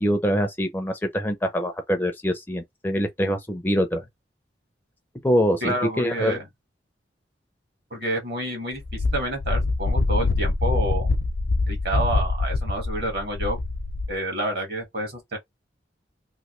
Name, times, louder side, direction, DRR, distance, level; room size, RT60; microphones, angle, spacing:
voice 1, 0.0-4.0 5.2-6.4, equal, 10° left, 0.4 m, -24 dB
voice 2, 5.6-6.5 7.9-8.8 9.1-11.1 11.7-13.6 14.1-15.4, right 1 dB, 55° right, 1.7 m, -28 dB
Wind, 8.8-14.2, left 3 dB, 70° left, 0.6 m, -24 dB
3.0 x 2.6 x 3.0 m
head